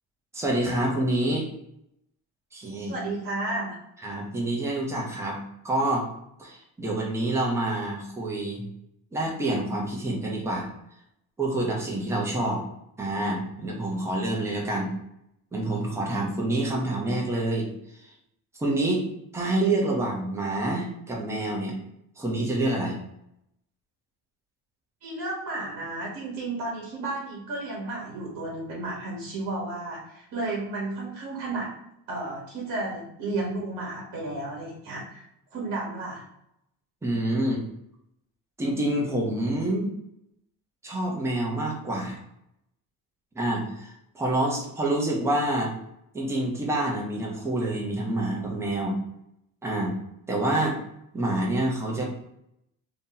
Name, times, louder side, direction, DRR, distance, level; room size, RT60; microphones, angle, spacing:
voice 1, 0.3-1.5 2.5-2.9 4.0-5.4 5.6-6.1 6.4-8.6 9.1-10.7 11.4-12.6 13.0-14.9 15.5-18.1 18.6-19.0 19.3-21.8 22.2-23.0 37.0-37.6 38.6-39.9 40.8-42.2 43.3-45.7 46.1-49.0 49.6-49.9 50.3-50.8 51.1-52.0, right 1 dB, 5° right, -2 dB, 0.6 m, -27 dB
voice 2, 2.9-3.8 25.0-31.7 32.1-35.2 35.5-36.2, right 2 dB, 50° right, -4 dB, 1.1 m, -32 dB
2.7 x 2.7 x 3.7 m, 0.80 s
cardioid pair, 170°, 38 cm